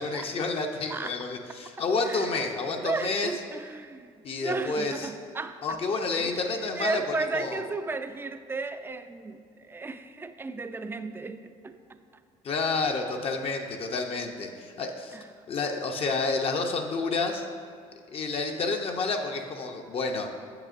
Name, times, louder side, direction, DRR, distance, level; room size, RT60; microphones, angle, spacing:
voice 1, 0.0-3.3 4.2-5.1 5.6-7.6 12.4-15.2 15.5-17.5 18.1-20.3, left 3 dB, 45° left, 3 dB, 0.6 m, -29 dB
voice 2, 2.0-2.4 2.8-5.8 6.2-12.0 15.1-15.3, right 3 dB, 15° right, 10 dB, 0.3 m, -34 dB
7.8 x 6.8 x 2.5 m, 2.2 s
supercardioid pair, 90°, 14 cm